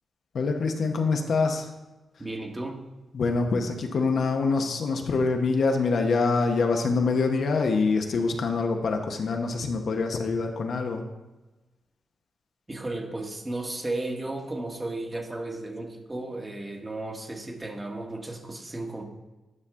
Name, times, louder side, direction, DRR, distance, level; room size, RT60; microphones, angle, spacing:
voice 1, 0.3-1.7 3.1-11.0, left 4 dB, 65° left, 4 dB, 0.8 m, -25 dB
voice 2, 2.2-2.8 12.7-19.0, right 2 dB, 20° right, 3 dB, 1.4 m, -34 dB
9.8 x 5.4 x 3.7 m, 1.1 s
cardioid pair, 65°, 0 cm